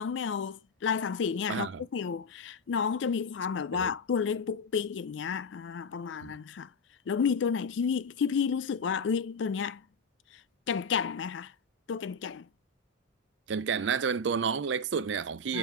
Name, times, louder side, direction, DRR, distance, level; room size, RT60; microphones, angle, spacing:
voice 1, 0.0-6.7 7.1-9.8 10.7-11.5 11.9-12.5 15.5-15.6, left 6 dB, 70° left, 0.4 m, -31 dB
voice 2, 1.5-1.8 3.7-3.9 6.2-6.4 13.5-15.6, right 6 dB, 70° right, 0.4 m, -30 dB
9.2 x 3.1 x 4.6 m
head